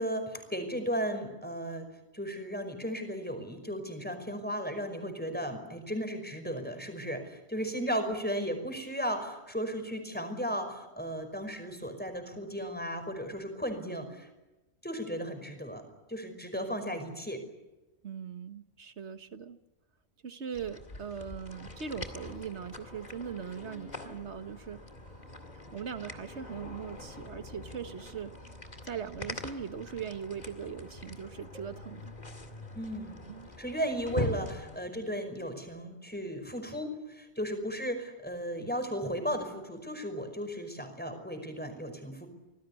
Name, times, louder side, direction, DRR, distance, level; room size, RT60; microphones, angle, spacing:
voice 1, 0.0-1.9 2.1-14.3 14.8-15.8 16.1-17.4 32.7-33.2 33.6-42.3, equal, 10° left, 7 dB, 5.3 m, -35 dB
voice 2, 18.0-19.6 20.2-24.8 25.5-28.3 28.8-32.1 33.3-33.5, right 7 dB, 85° right, 9 dB, 1.7 m, -40 dB
sound 1, 20.5-34.8, left 1 dB, 40° left, 2.4 m, -43 dB
26.5 x 19.5 x 9.6 m, 1.0 s
omnidirectional pair, 1.1 m